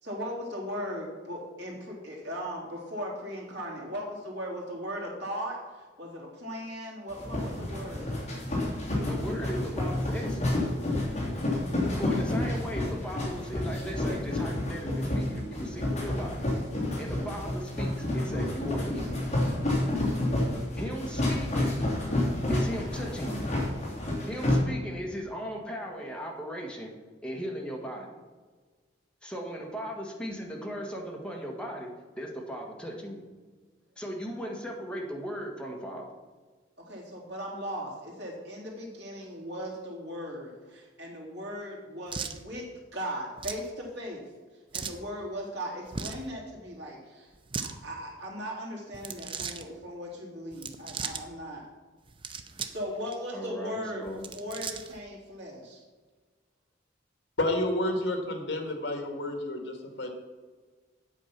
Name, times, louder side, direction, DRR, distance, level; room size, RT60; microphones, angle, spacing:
voice 1, 0.0-8.1 36.9-44.2 44.7-51.6 52.7-55.8, equal, 60° right, -3 dB, 3.1 m, -38 dB
sound 1, 7.1-24.5, left 1 dB, 35° left, 3.0 m, -30 dB
voice 2, 9.1-10.6 12.0-16.4 17.0-19.2 20.8-21.9 22.5-23.5 24.3-26.9 27.2-28.2 29.2-31.9 32.2-33.2 34.0-36.1 53.3-54.3, equal, 5° left, -1 dB, 1.6 m, -37 dB
sound 2, 42.1-42.4 43.4-43.7 44.7-45.0 45.9-46.3 47.3-47.7 48.9-49.6 50.5-51.2 52.1-52.8 53.1-53.2 54.1-55.0, right 5 dB, 25° right, 0.6 m, -37 dB
voice 3, 57.4-60.1, left 1 dB, 65° left, 4 dB, 2.0 m, -30 dB
8.4 x 8.4 x 5.9 m, 1.4 s
head